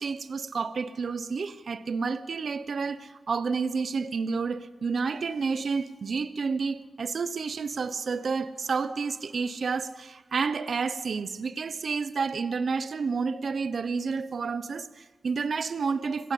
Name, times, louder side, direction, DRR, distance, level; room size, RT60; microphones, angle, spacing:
voice 1, 0.0-16.3, right 5 dB, 65° right, 1.0 m, -30 dB
26.5 x 17.0 x 8.6 m
wide cardioid pair, 105°, 0 cm